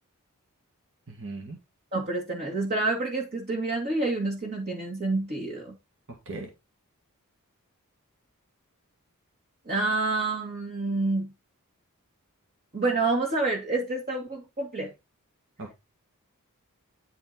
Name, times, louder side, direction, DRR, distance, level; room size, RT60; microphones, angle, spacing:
voice 1, 1.1-1.6 6.3-6.5 15.6-15.7, right 3 dB, 60° right, 1.9 m, -38 dB
voice 2, 1.9-5.7 9.7-11.3 12.7-14.9, right 3 dB, 45° right, 2.2 m, -28 dB
10.0 x 4.4 x 4.3 m
head